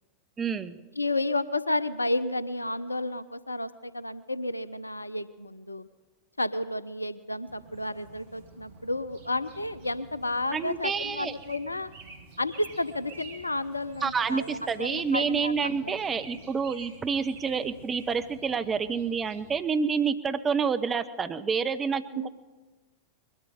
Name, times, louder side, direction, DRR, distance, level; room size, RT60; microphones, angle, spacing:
voice 1, 0.4-0.8 10.5-11.3 14.0-22.3, right 6 dB, 20° right, 11 dB, 0.7 m, -28 dB
voice 2, 1.0-5.9 6.4-11.9 12.4-16.0 22.1-22.3, left 2 dB, 80° left, 16 dB, 0.5 m, -31 dB
sound 1, 7.5-19.6, right 4 dB, 55° right, 1.8 m, -50 dB
21.5 x 12.5 x 5.0 m, 1.3 s
figure-of-eight pair, 90°, 0 cm